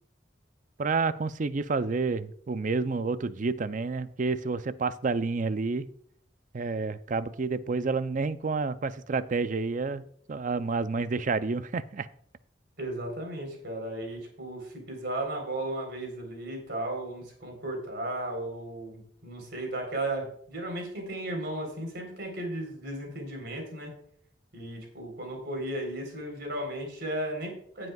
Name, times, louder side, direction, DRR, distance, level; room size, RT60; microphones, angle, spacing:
voice 1, 0.8-5.9 6.5-12.1, right 4 dB, 45° right, 13 dB, 0.5 m, -29 dB
voice 2, 12.8-23.9 24.5-27.9, right 1 dB, 60° right, 2 dB, 3.7 m, -35 dB
17.0 x 7.8 x 2.3 m, 0.62 s
head